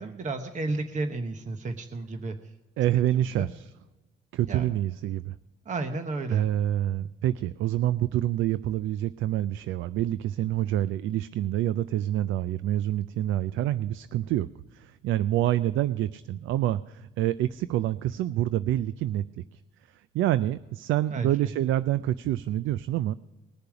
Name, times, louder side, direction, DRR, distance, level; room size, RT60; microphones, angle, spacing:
voice 1, 0.0-2.4 3.4-3.5 4.5-4.7 5.6-6.5 21.1-21.5, right 3 dB, 40° right, 6 dB, 1.0 m, -32 dB
voice 2, 2.8-3.7 4.3-5.3 6.3-14.5 14.7-19.2 20.1-23.1, right 13 dB, 85° right, 15 dB, 0.4 m, -27 dB
20.5 x 6.8 x 4.9 m, 1.1 s
cardioid pair, 90°, 20 cm